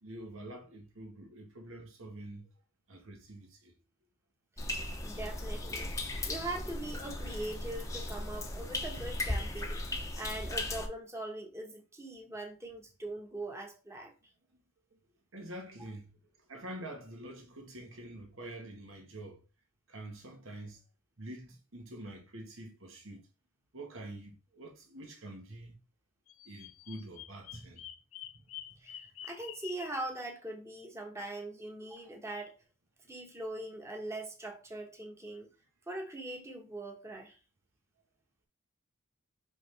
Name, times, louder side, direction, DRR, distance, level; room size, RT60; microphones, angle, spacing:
voice 1, 0.0-2.5 2.9-3.7 9.0-9.1 15.3-16.1 16.5-19.4 19.9-20.8 21.2-23.3 23.7-25.8 26.4-27.8, right 1 dB, 75° right, 1.6 m, -46 dB
sound 1, 4.6-10.9, left 1 dB, 15° left, 0.9 m, -37 dB
voice 2, 4.7-5.9 6.2-14.1 28.8-32.6 33.0-35.5 35.9-37.4, right 2 dB, 15° right, 1.3 m, -42 dB
Bird vocalization bird call bird song, 26.3-30.1, left 12 dB, 85° left, 0.6 m, -48 dB
5.6 x 5.0 x 3.4 m
head